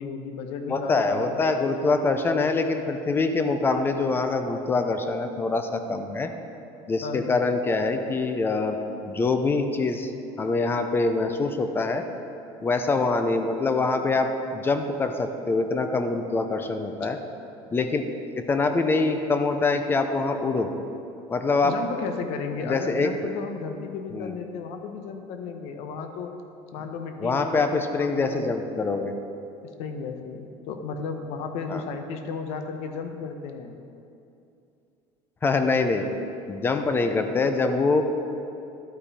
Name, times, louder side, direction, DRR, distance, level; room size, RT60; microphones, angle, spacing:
voice 1, 0.0-1.8 7.0-7.4 21.6-26.3 26.7-28.5 29.8-33.8, left 5 dB, 65° left, 6 dB, 0.8 m, -34 dB
voice 2, 0.7-6.3 6.9-8.8 9.0-10.1 10.4-12.0 12.6-17.2 17.7-18.1 18.4-20.7 21.3-21.7 22.6-23.1 24.1-24.3 27.2-29.1 31.7-31.8 35.4-36.1 36.5-38.0, left 3 dB, 20° left, 7 dB, 0.4 m, -24 dB
11.5 x 5.8 x 4.1 m, 2.7 s
cardioid pair, 155°, 12 cm